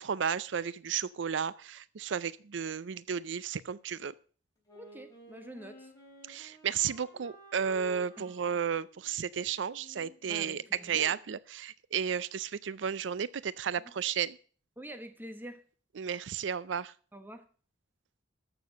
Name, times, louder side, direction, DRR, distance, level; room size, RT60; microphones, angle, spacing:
voice 1, 0.0-4.1 6.3-14.4 16.0-16.9, right 7 dB, 85° right, 19 dB, 0.5 m, -33 dB
Wind instrument woodwind instrument, 4.7-11.2, right 1 dB, 20° left, 4.6 m, -54 dB
voice 2, 4.7-5.9 8.2-8.3 10.2-11.1 14.8-15.6 17.1-17.4, right 1 dB, 10° right, 8 dB, 1.3 m, -46 dB
13.5 x 6.9 x 6.4 m, 0.41 s
head